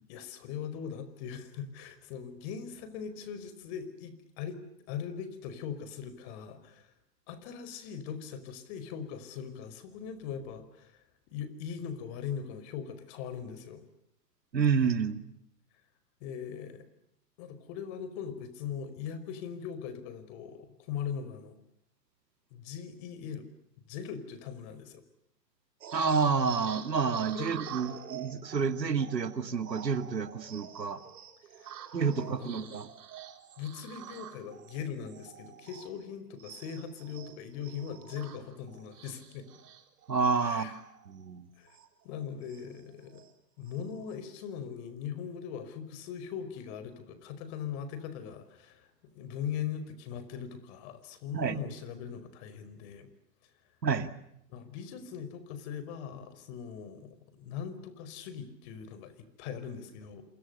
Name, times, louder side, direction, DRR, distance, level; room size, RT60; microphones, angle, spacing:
voice 1, 0.1-4.6 4.9-6.9 7.3-13.9 16.2-16.9 17.4-21.6 22.5-23.5 23.9-25.0 27.3-27.7 31.5-32.7 33.6-39.5 40.4-40.7 41.6-41.8 42.0-43.2 43.6-48.9 49.2-53.1 54.5-60.2, left 7 dB, 40° left, 13 dB, 5.2 m, -40 dB
voice 2, 14.5-15.2 25.9-31.0 31.9-32.9 40.1-40.7 41.1-41.5 51.3-51.6 53.8-54.1, right 5 dB, 90° right, 10 dB, 2.4 m, -29 dB
sound 1, 25.8-36.1 36.4-41.3 41.7-41.9 42.2-43.3 43.7-44.1, right 9 dB, 65° right, 4.3 m, -47 dB
28.5 x 28.0 x 6.9 m, 0.78 s
hypercardioid pair, 125°, 49 cm